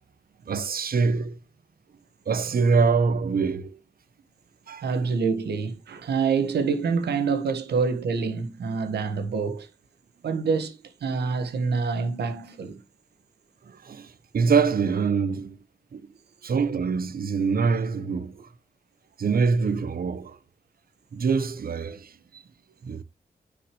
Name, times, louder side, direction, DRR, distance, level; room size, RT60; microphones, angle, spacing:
voice 1, 0.5-1.4 2.3-3.8 4.7-4.8 13.7-15.6 15.9-16.1 16.4-18.5 19.2-20.4 21.1-22.4 22.8-23.0, right 5 dB, 60° right, 1.0 m, -24 dB
voice 2, 4.8-9.7 10.2-12.8, right 5 dB, 80° right, 1.5 m, -26 dB
9.7 x 5.1 x 3.2 m
supercardioid pair, 45°, 17 cm